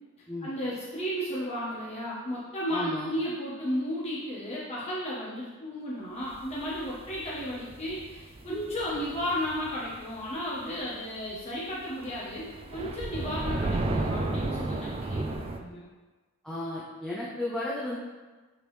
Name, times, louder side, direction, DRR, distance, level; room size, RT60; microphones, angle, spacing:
voice 1, 0.4-15.9, equal, 30° left, -7 dB, 1.1 m, -34 dB
voice 2, 2.7-3.1 16.4-18.0, left 1 dB, 5° left, -8 dB, 0.8 m, -34 dB
sound 1, 6.3-10.9 11.2-11.4 11.8-15.6, right 2 dB, 25° right, 0.4 m, -33 dB
8.1 x 3.7 x 3.3 m, 1.3 s
head